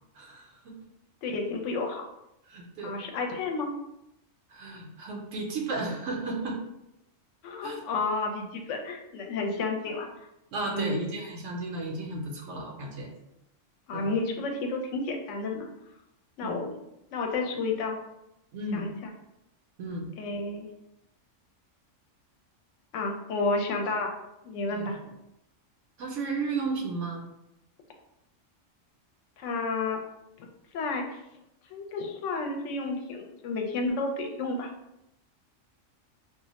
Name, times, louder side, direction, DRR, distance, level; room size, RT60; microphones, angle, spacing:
voice 1, 0.2-0.7 2.5-2.9 4.5-6.6 7.6-7.8 10.5-13.1 13.9-14.1 16.4-16.6 18.5-18.8 19.8-20.1 24.7-24.9 26.0-27.2, right 3 dB, 75° right, -1 dB, 0.9 m, -34 dB
voice 2, 1.2-2.0 2.8-3.7 7.4-10.1 10.6-11.1 13.9-15.7 16.4-16.7 17.1-18.0 18.7-18.9 20.2-20.7 22.9-24.1 24.4-25.0 29.4-30.0 30.7-31.2 31.7-34.7, left 3 dB, 75° left, 2 dB, 0.9 m, -31 dB
2.4 x 2.0 x 3.9 m, 0.86 s
omnidirectional pair, 1.3 m